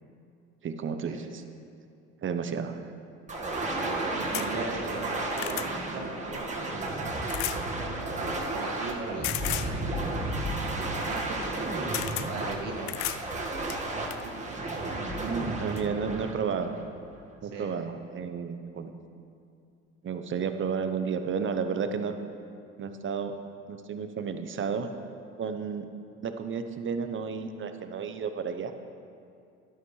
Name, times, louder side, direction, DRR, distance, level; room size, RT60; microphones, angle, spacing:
voice 1, 0.6-1.4 2.2-2.9 15.2-16.7 17.4-18.9 20.0-22.1 22.8-23.4 23.7-24.9 25.4-25.9 26.2-28.7, right 6 dB, 40° right, 8 dB, 0.9 m, -32 dB
sound 1, 3.3-17.2, right 2 dB, 25° right, 1.6 m, -33 dB
voice 2, 3.7-7.2 8.0-9.8 10.7-13.0 13.5-14.6 17.5-17.7, right 3 dB, 75° right, -1 dB, 2.1 m, -39 dB
sound 2, 4.3-4.5 5.0-5.7 7.3-7.6 9.2-9.7 11.4-11.6 11.9-12.3 12.9-13.2 13.7-14.2 15.3-15.4 15.8-15.9, left 15 dB, 65° left, 0.5 m, -33 dB
12.5 x 11.0 x 3.2 m, 2.5 s
supercardioid pair, 80°, 31 cm